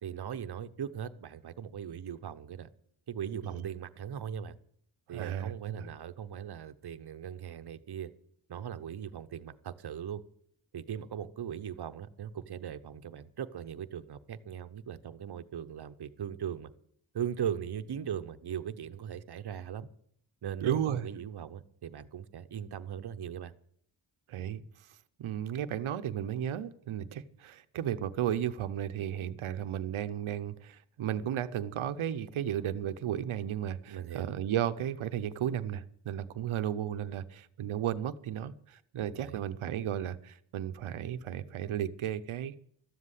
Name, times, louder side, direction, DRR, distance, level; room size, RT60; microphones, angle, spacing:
voice 1, 0.0-2.7 3.1-4.5 5.1-8.1 8.5-10.2 10.7-16.7 17.1-19.9 20.4-23.5 33.9-34.3 39.2-39.4, right 9 dB, 55° right, 10 dB, 0.9 m, -39 dB
voice 2, 5.1-5.9 20.6-21.1 24.3-24.6 25.2-42.6, right 10 dB, 80° right, 11 dB, 0.8 m, -34 dB
13.0 x 7.6 x 8.2 m, 0.67 s
cardioid pair, 70°, 48 cm